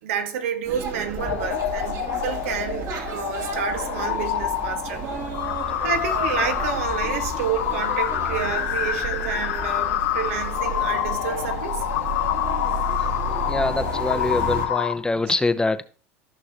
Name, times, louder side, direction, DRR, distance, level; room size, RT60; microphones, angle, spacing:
voice 1, 0.0-5.0 5.8-11.8, right 7 dB, 80° right, 1.6 m, -29 dB
sound 1, 0.6-14.7, right 3 dB, 50° right, 2.5 m, -33 dB
sound 2, 1.2-14.9, left 12 dB, 85° left, 1.3 m, -27 dB
voice 2, 13.5-15.8, left 3 dB, 10° left, 0.8 m, -24 dB
14.5 x 6.2 x 2.9 m
hypercardioid pair, 90°, 7 cm